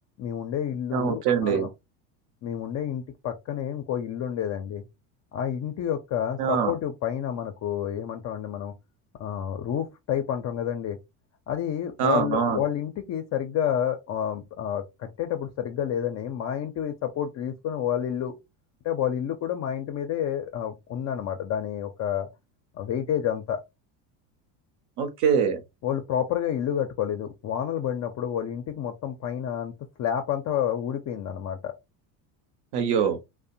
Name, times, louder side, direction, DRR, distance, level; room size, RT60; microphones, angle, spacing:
voice 1, 0.2-1.7 2.4-4.8 5.3-8.7 9.2-11.0 11.5-18.3 18.8-22.3 22.7-23.6 25.8-29.7 30.0-31.8, left 9 dB, 40° left, 0.5 m, -29 dB
voice 2, 0.9-1.7 6.4-6.7 12.0-12.6 25.0-25.6 32.7-33.2, right 7 dB, 55° right, 0.9 m, -23 dB
2.7 x 2.1 x 2.6 m
supercardioid pair, 105°, 45 cm